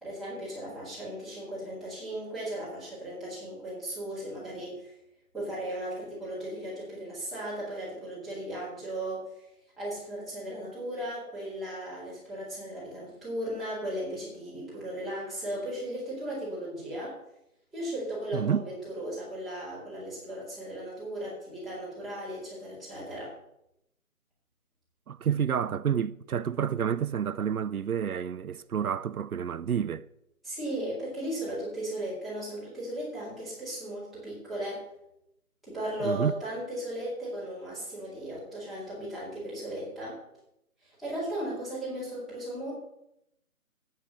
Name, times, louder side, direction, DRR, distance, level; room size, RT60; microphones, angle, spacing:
voice 1, 0.0-4.9 5.3-9.5 9.8-17.1 17.7-23.3 30.4-34.8 35.6-40.2 40.8-42.7, right 1 dB, ahead, 2.3 m, -36 dB
voice 2, 18.3-18.6 25.1-30.1 36.0-36.3, right 8 dB, 80° right, 0.6 m, -29 dB
8.2 x 6.9 x 7.7 m
figure-of-eight pair, 170°, 43 cm